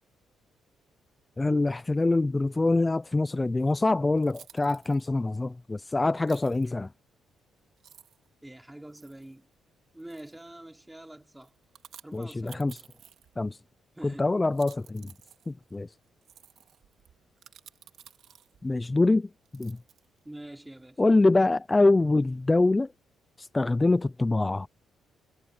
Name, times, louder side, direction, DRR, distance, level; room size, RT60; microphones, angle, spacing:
voice 1, 1.4-6.9 12.1-12.8 13.4-13.6 14.0-15.1 15.5-15.9 18.6-19.8 21.0-22.9 23.4-24.7, left 2 dB, 20° left, 0.5 m, -25 dB
sound 1, 4.2-5.1 6.3-6.7 7.4-7.5 7.8-8.3 8.9-9.3 10.0-10.5 11.4-13.5 14.4-18.7 19.4-20.2, right 9 dB, 70° right, 2.4 m, -54 dB
voice 2, 8.4-9.5 9.9-11.5 12.0-12.7 13.9-14.3 20.2-21.3, right 1 dB, 10° right, 3.4 m, -45 dB
cardioid pair, 90°, 0 cm